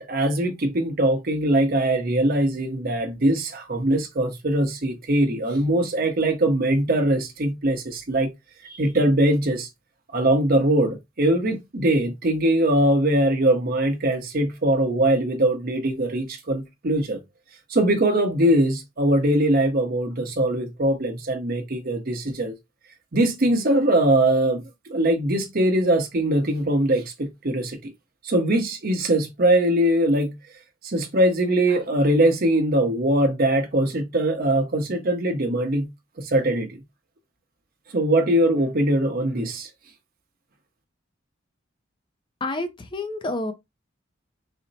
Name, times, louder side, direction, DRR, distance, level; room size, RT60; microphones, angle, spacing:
voice 1, 0.0-8.3 8.6-9.7 10.1-17.2 17.7-22.5 23.1-24.6 24.9-27.9 28.2-30.3 30.8-35.9 36.2-36.8 37.9-39.7, right 1 dB, 50° right, 0.8 m, -21 dB
voice 2, 42.4-43.5, left 2 dB, 25° left, 0.5 m, -29 dB
4.2 x 2.0 x 4.0 m
head